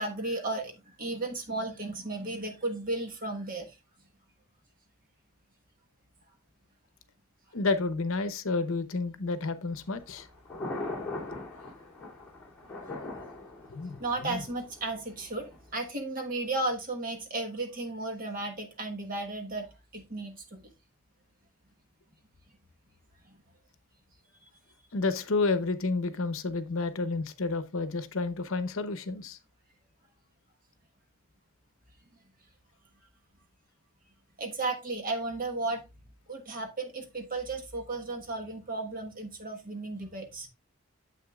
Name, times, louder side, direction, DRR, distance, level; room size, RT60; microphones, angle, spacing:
voice 1, 0.0-3.8 14.0-20.7 23.2-23.4 34.4-35.8 36.3-40.5, right 2 dB, 40° right, 1.3 m, -34 dB
voice 2, 7.5-10.3 13.7-14.4 24.9-29.4, left 3 dB, 65° left, 0.8 m, -30 dB
Thunder, 9.7-15.8, left 2 dB, 10° left, 2.7 m, -41 dB
9.3 x 7.6 x 2.4 m
head